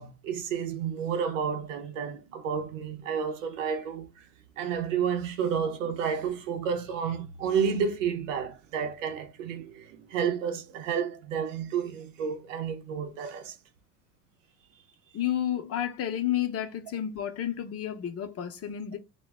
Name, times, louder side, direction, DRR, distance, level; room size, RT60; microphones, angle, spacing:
voice 1, 0.0-4.2 4.6-13.6, right 7 dB, 80° right, 0.7 m, -31 dB
voice 2, 15.1-19.0, left 11 dB, 40° left, 0.7 m, -31 dB
2.2 x 2.1 x 3.3 m
hypercardioid pair, 65°, 38 cm